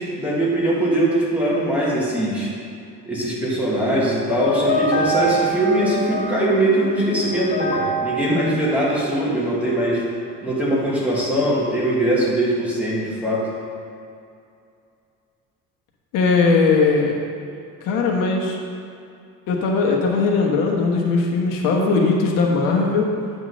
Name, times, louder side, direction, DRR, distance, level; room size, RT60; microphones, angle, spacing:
voice 1, 0.0-2.5 3.0-10.0 10.4-13.5, right 1 dB, 5° right, -7 dB, 1.5 m, -21 dB
sound 1, 4.3-9.6, right 1 dB, 50° left, 1.3 m, -26 dB
voice 2, 16.1-17.2 17.8-18.6 19.5-23.1, left 4 dB, 85° left, -1 dB, 1.3 m, -19 dB
9.0 x 3.7 x 6.2 m, 2.5 s
cardioid pair, 165°, 32 cm